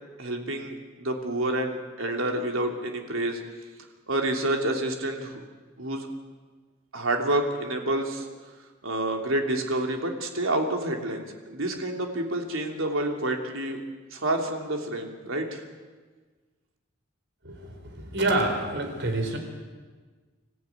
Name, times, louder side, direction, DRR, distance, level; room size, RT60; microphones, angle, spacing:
voice 1, 0.2-3.4 4.1-5.4 5.8-6.1 6.9-8.3 8.8-13.8 14.1-15.6, right 1 dB, 85° right, 2 dB, 3.1 m, -28 dB
voice 2, 17.4-19.4, right 2 dB, 60° right, 5 dB, 4.4 m, -27 dB
26.0 x 14.5 x 9.4 m, 1.4 s
head